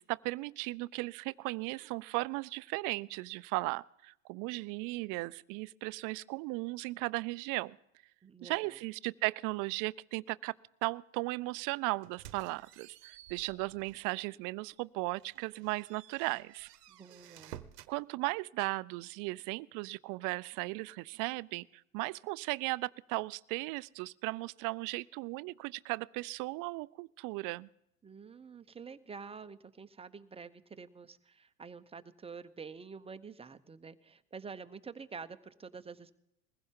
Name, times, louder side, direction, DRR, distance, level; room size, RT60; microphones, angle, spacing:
voice 1, 0.0-7.8 8.4-10.5 10.8-16.7 17.9-27.7, right 23 dB, 45° right, 19 dB, 0.4 m, -36 dB
voice 2, 8.2-8.8 16.9-17.6 28.0-36.2, right 5 dB, 15° right, 11 dB, 0.7 m, -48 dB
sound 1, 12.0-14.1 14.6-14.7 15.1-18.0, right 11 dB, 85° right, 0.9 m, -53 dB
21.0 x 15.5 x 3.7 m, 0.80 s
hypercardioid pair, 95°, 46 cm